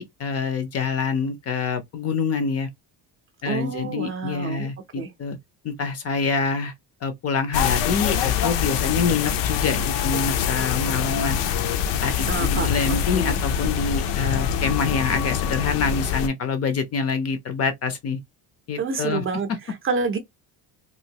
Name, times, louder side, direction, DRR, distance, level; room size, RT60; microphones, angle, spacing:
voice 1, 0.0-2.7 3.4-5.4 5.6-6.7 7.0-11.4 12.0-18.2 18.7-19.2, left 5 dB, 35° left, 0.5 m, -26 dB
voice 2, 3.4-4.7 5.0-5.1 12.3-13.4 18.8-20.2, right 4 dB, 30° right, 0.5 m, -28 dB
sound 1, 7.5-16.3, left 8 dB, 90° left, 0.6 m, -24 dB
3.0 x 2.6 x 2.7 m
cardioid pair, 175°, 42 cm